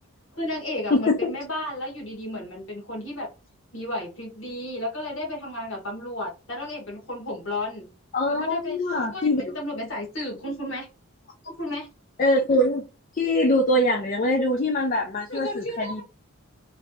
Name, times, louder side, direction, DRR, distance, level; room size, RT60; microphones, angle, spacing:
voice 1, 0.3-3.3 3.7-7.9 8.3-8.8 9.1-10.9 11.4-11.9 15.3-16.0, left 1 dB, 60° left, 1.4 m, -33 dB
voice 2, 8.1-9.5 12.2-12.8 13.1-16.0, left 1 dB, 35° left, 0.4 m, -23 dB
3.2 x 2.6 x 2.7 m
head